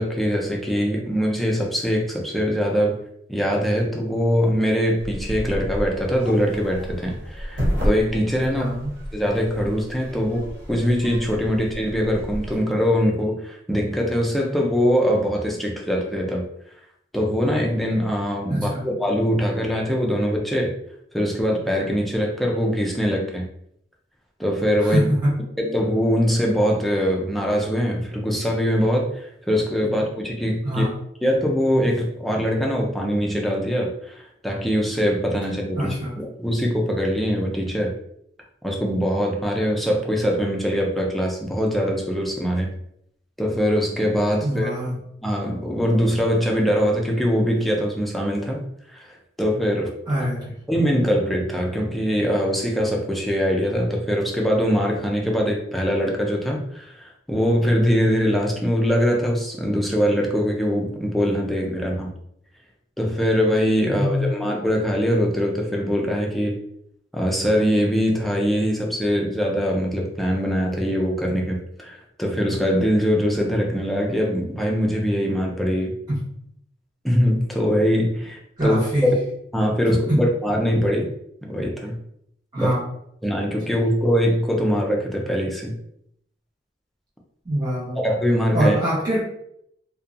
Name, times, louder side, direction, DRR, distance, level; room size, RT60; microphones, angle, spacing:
voice 1, 0.0-3.0 3.3-8.7 9.1-16.4 17.1-20.7 21.1-23.4 24.4-25.1 25.6-30.9 31.2-38.0 38.6-42.7 43.4-44.7 45.2-49.9 50.7-62.1 63.0-66.6 67.1-75.9 77.0-79.1 79.5-81.1 81.4-82.0 82.6-82.7 83.2-85.8 88.0-88.8, equal, ahead, -1 dB, 0.4 m, -22 dB
sound 1, 5.0-12.6, equal, 80° right, 0.8 m, -31 dB
voice 2, 8.5-8.9 18.5-18.8 24.8-25.3 30.6-31.0 35.7-36.1 44.4-44.9 50.1-50.5 63.9-64.3 76.1-76.2 78.6-79.1 80.1-80.2 82.5-82.8 87.4-88.0 88.5-89.2, equal, 25° right, -9 dB, 1.0 m, -23 dB
2.7 x 2.2 x 2.4 m, 0.73 s
head